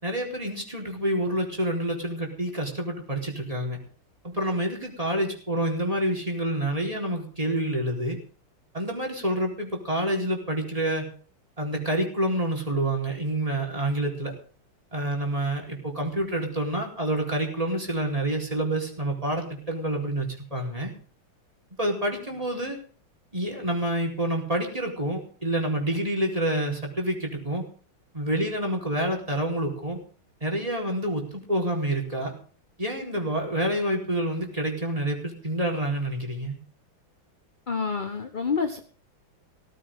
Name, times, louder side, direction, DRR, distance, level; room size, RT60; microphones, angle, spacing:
voice 1, 0.0-3.8 4.2-8.2 8.7-11.1 11.6-14.3 14.9-20.9 21.8-22.8 23.3-27.7 28.1-30.0 30.4-32.3 32.8-36.6, right 1 dB, 15° right, 0 dB, 4.4 m, -28 dB
voice 2, 37.7-38.8, left 5 dB, 30° left, 6 dB, 1.1 m, -28 dB
17.5 x 15.5 x 3.8 m, 0.42 s
omnidirectional pair, 2.2 m